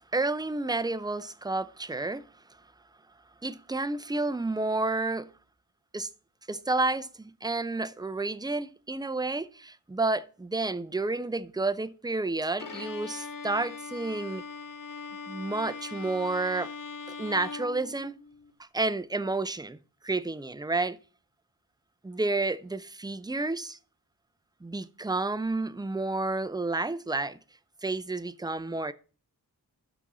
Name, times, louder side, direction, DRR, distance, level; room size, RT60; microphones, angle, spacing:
voice 1, 0.1-2.3 3.4-5.3 5.9-6.1 6.5-14.5 15.3-16.7 17.2-18.2 18.6-21.0 22.0-23.8 24.6-27.4 27.8-28.9, right 2 dB, 10° right, 0.5 m, -30 dB
Bowed string instrument, 12.6-18.5, left 5 dB, 55° left, 0.8 m, -41 dB
6.1 x 6.0 x 6.8 m
wide cardioid pair, 50°, 40 cm